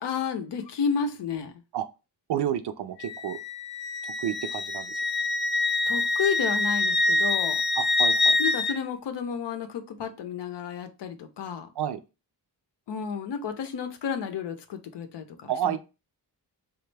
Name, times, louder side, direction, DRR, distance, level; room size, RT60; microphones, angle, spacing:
voice 1, 0.0-1.5 5.9-7.6 8.4-11.7 12.9-15.8, left 6 dB, 80° left, 0.6 m, -31 dB
voice 2, 2.3-3.4 4.2-4.9 7.8-8.4 11.8-12.0 15.5-15.8, right 10 dB, 75° right, 0.5 m, -30 dB
Wind instrument woodwind instrument, 3.0-8.8, left 3 dB, 30° left, 0.4 m, -25 dB
3.1 x 2.4 x 3.2 m
cardioid pair, 80°, 41 cm